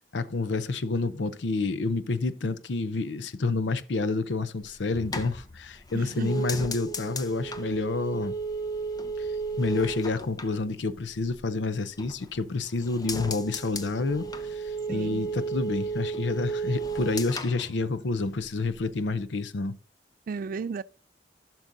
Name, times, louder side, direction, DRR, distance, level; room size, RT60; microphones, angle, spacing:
voice 1, 0.1-8.3 9.2-9.3 9.6-19.8, left 3 dB, 80° left, 0.6 m, -29 dB
sound 1, 4.6-11.4 11.8-12.5 12.8-18.5 18.7-19.2, right 3 dB, 20° left, 0.6 m, -34 dB
voice 2, 5.9-6.4 14.9-15.2 20.3-20.8, right 5 dB, 50° right, 0.3 m, -34 dB
15.5 x 6.1 x 2.6 m
head